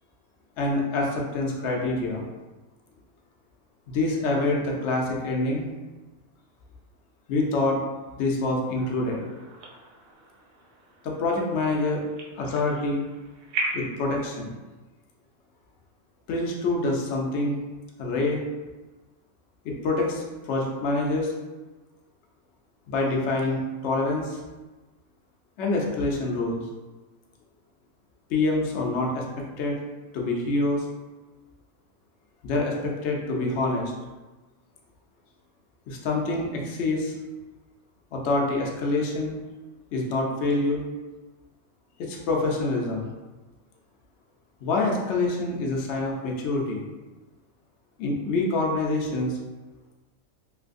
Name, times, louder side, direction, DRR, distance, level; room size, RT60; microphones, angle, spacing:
voice 1, 0.6-2.2 3.9-5.7 7.3-7.8 8.2-9.2 11.0-12.0 12.4-13.0 13.7-14.5 16.3-17.6 18.0-18.4 19.6-21.3 22.9-24.4 25.6-26.6 28.3-29.8 30.1-30.8 32.4-33.9 35.9-37.1 38.1-39.4 39.9-40.8 42.0-43.1 44.6-46.9 48.0-49.4, left 2 dB, 65° left, -1 dB, 0.9 m, -26 dB
sound 1, 8.7-14.0, right 2 dB, 80° right, 1.0 m, -37 dB
3.2 x 2.8 x 2.5 m, 1.2 s
omnidirectional pair, 1.4 m